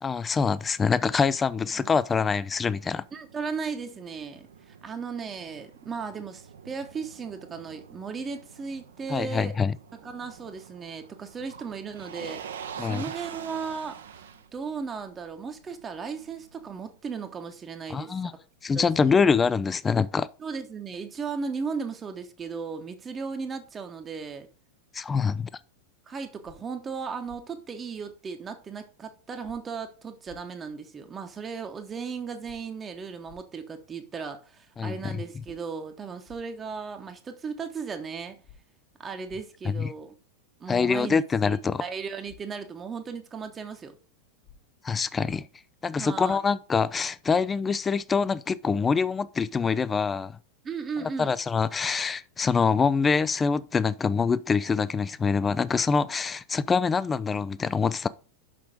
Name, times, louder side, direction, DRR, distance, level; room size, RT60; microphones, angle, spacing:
voice 1, 0.0-3.0 9.1-9.8 12.8-13.0 17.9-18.3 18.6-20.3 24.9-25.5 34.8-35.2 39.6-39.9 40.7-41.8 44.8-45.4 45.8-50.4 51.2-58.1, left 5 dB, 15° left, 0.4 m, -25 dB
Motor vehicle (road), 2.4-17.0, right 7 dB, 65° right, 0.7 m, -46 dB
voice 2, 3.1-9.5 10.0-18.4 18.7-19.1 20.4-24.5 26.1-38.4 39.0-40.2 40.6-44.0 46.0-46.4 50.6-51.4, right 5 dB, 20° right, 1.0 m, -36 dB
sound 1, 26.4-26.6 27.3-27.4 29.4-29.6 30.3-30.4 32.4-32.6 33.3-33.4 35.4-35.6 36.3-36.4 38.4-38.6 39.3-39.4 41.4-41.6 42.3-42.4 44.4-44.6 45.3-45.4, left 7 dB, 35° left, 1.2 m, -52 dB
6.1 x 5.7 x 5.0 m
figure-of-eight pair, 90°, 0 cm